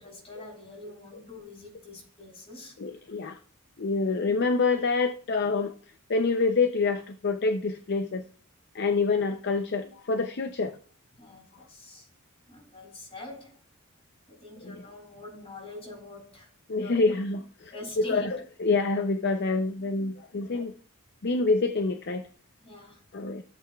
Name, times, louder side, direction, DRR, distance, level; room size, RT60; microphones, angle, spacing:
voice 1, 0.0-2.8 3.1-3.2 11.2-12.1 12.5-13.6 14.3-16.5 16.8-17.0 17.7-18.4 22.6-23.0, left 2 dB, 25° left, 4.3 m, -44 dB
voice 2, 2.8-3.4 3.8-5.7 6.1-8.2 8.7-10.8 14.6-14.8 16.7-17.7 18.1-20.7 21.2-22.3 23.1-23.4, left 3 dB, 50° left, 0.5 m, -27 dB
14.5 x 7.6 x 2.3 m
head